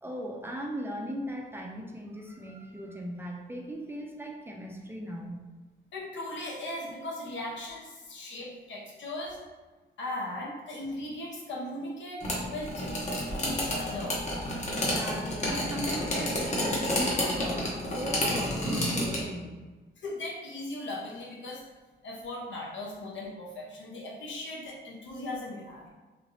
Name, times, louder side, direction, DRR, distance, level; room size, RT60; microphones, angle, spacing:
voice 1, 0.0-5.5 14.7-19.7, equal, 10° right, -1 dB, 0.4 m, -38 dB
voice 2, 5.9-9.4 10.0-12.9 13.4-14.2 20.0-21.6 22.0-25.9, left 1 dB, 85° left, -2 dB, 0.8 m, -38 dB
sound 1, 12.2-19.2, left 1 dB, 40° left, 0.8 m, -30 dB
3.2 x 2.8 x 2.6 m, 1.3 s
wide cardioid pair, 140°, 19 cm